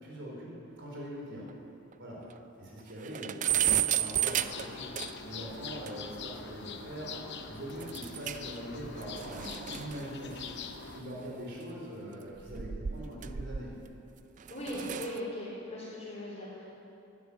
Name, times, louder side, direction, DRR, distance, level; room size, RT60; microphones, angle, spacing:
voice 1, 0.0-1.4 2.0-2.2 2.6-4.9 5.2-10.6 10.9-13.7, equal, 60° right, -3 dB, 3.8 m, -42 dB
sound 1, 1.0-1.1 1.5-1.6 1.9-2.0 2.4-2.5 2.8-5.4 5.9-6.0 7.8-8.6 8.8-11.5 12.3-13.9 14.4-15.2, right 10 dB, 40° right, 0.4 m, -33 dB
sound 2, 4.4-11.0, left 5 dB, 60° left, 0.8 m, -44 dB
voice 2, 14.5-16.6, left 1 dB, 35° left, -9 dB, 3.3 m, -39 dB
11.5 x 10.5 x 8.6 m, 2.8 s
head